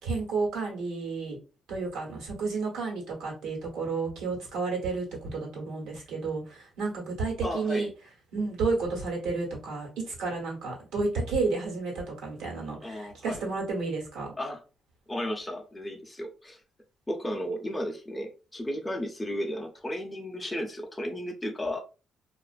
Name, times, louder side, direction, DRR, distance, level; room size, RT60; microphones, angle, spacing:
voice 1, 0.0-1.4 1.7-7.9 8.3-14.3, right 3 dB, 90° right, -1 dB, 1.1 m, -31 dB
voice 2, 7.4-7.9 12.8-13.4 14.4-14.6 15.1-16.6 17.1-21.8, equal, 15° left, 3 dB, 0.5 m, -34 dB
2.5 x 2.4 x 2.3 m, 0.33 s
cardioid pair, 90°, 0 cm